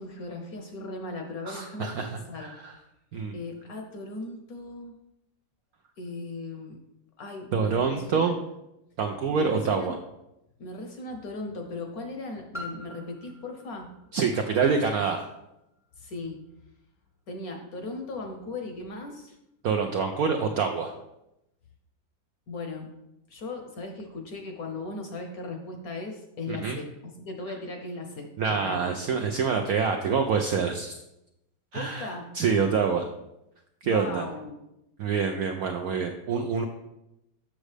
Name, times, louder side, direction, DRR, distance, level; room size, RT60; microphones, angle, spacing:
voice 1, 0.0-2.6 3.3-5.0 6.0-6.8 7.2-8.3 9.3-10.0 10.6-13.9 16.0-16.4 17.3-19.3 22.5-22.9 23.3-28.9 31.7-32.3 33.8-34.6, left 2 dB, 60° left, 3 dB, 1.0 m, -38 dB
voice 2, 1.4-2.8 3.1-3.4 7.5-8.4 9.0-10.0 14.1-15.3 19.6-20.9 26.5-26.8 28.4-30.9 31.7-33.1 33.8-34.2 35.0-36.6, right 5 dB, 75° right, 4 dB, 0.8 m, -26 dB
Piano, 12.5-18.0 18.7-18.8, left 1 dB, 5° right, 0.5 m, -47 dB
7.2 x 6.3 x 3.3 m, 0.88 s
omnidirectional pair, 2.1 m